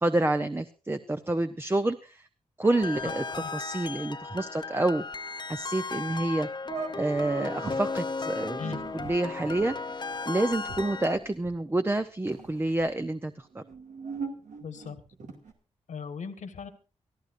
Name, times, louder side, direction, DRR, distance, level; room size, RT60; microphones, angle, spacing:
voice 1, 0.0-2.3 2.6-3.2 3.5-5.0 5.5-6.5 6.9-8.6 8.9-9.7 10.3-13.6, right 2 dB, 20° right, 9 dB, 0.7 m, -28 dB
sound 1, 2.6-11.2, left 4 dB, 35° left, 0.7 m, -35 dB
voice 2, 3.0-3.5 8.6-8.8 14.6-15.0 15.9-16.7, left 6 dB, 80° left, 8 dB, 1.6 m, -38 dB
sound 2, 6.1-6.2 6.7-7.8 8.5-11.9 12.2-12.9 13.5-15.5, right 4 dB, 85° right, 2.3 m, -41 dB
24.5 x 13.5 x 2.6 m, 0.32 s
cardioid pair, 65°, 12 cm